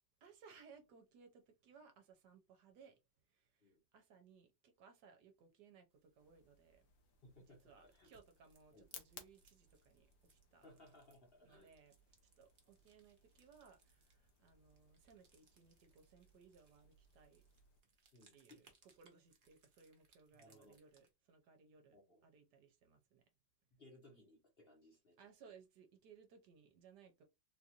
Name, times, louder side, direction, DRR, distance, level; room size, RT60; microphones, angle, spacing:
voice 1, 0.2-3.0 3.3-6.8 7.4-10.7 11.4-11.9 12.4-17.4 18.3-23.2 25.2-27.2, right 5 dB, 70° right, 1.2 m, -64 dB
sound 1, 5.9-21.1, right 3 dB, 40° right, 0.8 m, -75 dB
sound 2, 6.2-17.8, left 7 dB, 85° left, 1.5 m, -64 dB
voice 2, 7.2-8.1 8.7-8.9 10.6-11.7 18.1-18.6 20.3-20.8 21.9-22.2 23.7-25.5, left 1 dB, 40° left, 1.0 m, -64 dB
3.7 x 2.5 x 2.8 m
omnidirectional pair, 2.0 m